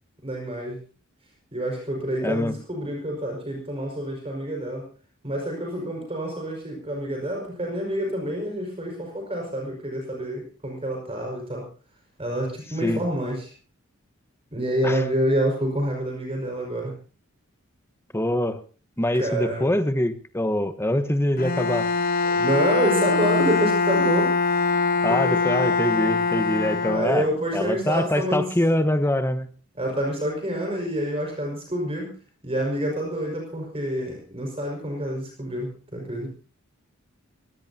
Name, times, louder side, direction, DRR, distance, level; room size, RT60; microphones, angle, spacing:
voice 1, 0.2-0.8 1.5-4.9 5.2-11.6 12.2-13.5 14.5-16.9 19.1-19.7 22.2-24.3 25.1-25.4 26.9-28.5 29.8-32.1 32.4-36.3, equal, 30° right, 0 dB, 5.4 m, -27 dB
voice 2, 2.2-2.5 12.8-13.0 14.8-15.0 18.1-18.6 19.0-21.9 25.0-27.2 27.5-29.5, left 1 dB, 10° left, 10 dB, 1.2 m, -24 dB
Bowed string instrument, 21.4-27.5, left 4 dB, 45° left, 1.2 m, -23 dB
24.0 x 17.5 x 2.8 m, 0.37 s
head